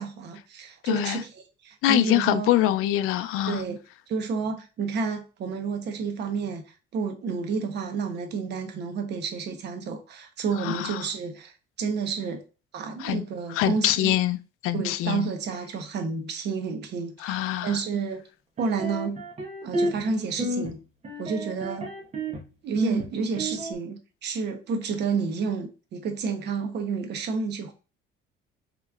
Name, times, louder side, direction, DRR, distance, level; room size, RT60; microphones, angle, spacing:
voice 1, 0.0-2.5 3.5-3.8 4.1-6.6 6.9-11.5 11.8-12.4 12.7-14.1 14.7-18.2 18.6-19.2 19.6-20.8 21.2-21.9 22.6-27.7, right 5 dB, 55° right, 1.0 m, -30 dB
voice 2, 0.9-1.2 1.8-3.6 10.6-11.0 13.0-13.2 13.5-14.4 14.6-15.3 17.2-17.8, left 13 dB, 85° left, 0.5 m, -24 dB
sound 1, 18.6-20.1 20.4-20.7 21.0-22.4 22.7-23.7, right 1 dB, 30° right, 1.1 m, -30 dB
5.9 x 3.2 x 2.4 m
cardioid pair, 165°, 21 cm